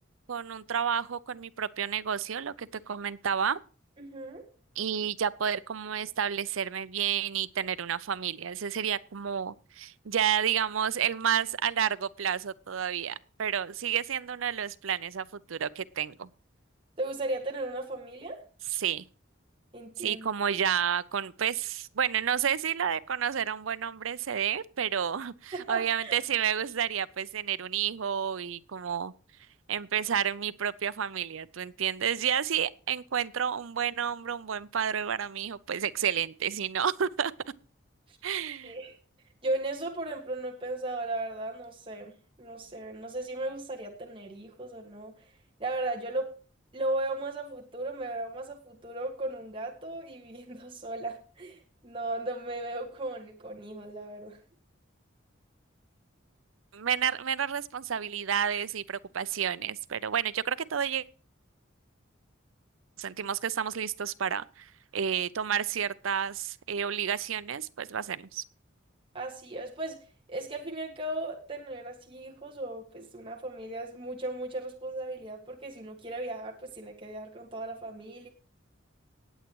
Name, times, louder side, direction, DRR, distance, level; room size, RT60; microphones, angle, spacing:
voice 1, 0.3-3.6 4.8-16.3 18.7-19.0 20.0-29.1 29.7-37.3 38.2-38.7 56.7-61.0 63.0-68.4, right 8 dB, 85° right, 0.6 m, -30 dB
voice 2, 4.0-4.4 17.0-18.4 19.7-20.3 25.5-26.2 38.1-38.2 38.6-39.0 39.4-42.1 42.4-45.1 45.6-46.3 46.7-54.4 69.1-70.0 70.3-78.3, right 2 dB, 25° right, 1.7 m, -36 dB
19.0 x 8.1 x 3.0 m
head